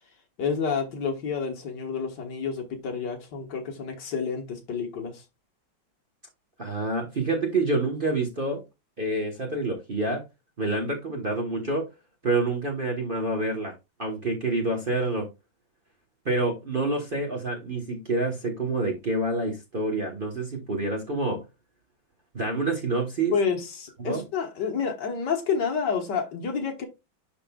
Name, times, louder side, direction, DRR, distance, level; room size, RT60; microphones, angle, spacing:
voice 1, 0.4-5.2 23.3-26.9, left 6 dB, 60° left, 1.8 m, -29 dB
voice 2, 6.6-8.6 9.0-10.2 10.6-11.8 12.2-13.7 14.0-15.3 16.2-21.4 22.3-23.3 24.0-24.2, right 2 dB, 35° right, 1.1 m, -27 dB
11.0 x 3.8 x 2.3 m
omnidirectional pair, 2.1 m